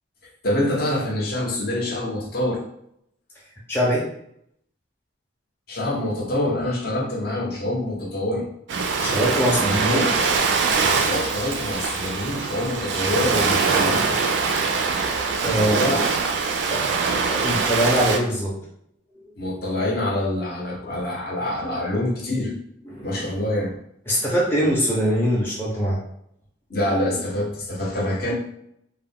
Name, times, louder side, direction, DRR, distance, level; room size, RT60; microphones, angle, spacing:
voice 1, 0.4-2.6 5.7-8.5 9.6-10.1 11.0-14.1 15.5-16.1 19.4-22.5 23.0-23.7 26.7-28.3, left 1 dB, 50° left, -2 dB, 0.7 m, -26 dB
voice 2, 3.7-4.1 9.0-10.1 15.4-15.8 16.7-17.0 17.3-18.6 21.6-21.8 22.9-23.2 24.1-26.0, equal, 10° left, -6 dB, 0.5 m, -22 dB
Ocean, 8.7-18.2, right 4 dB, 60° right, 0.3 m, -23 dB
2.3 x 2.1 x 3.5 m, 0.73 s
head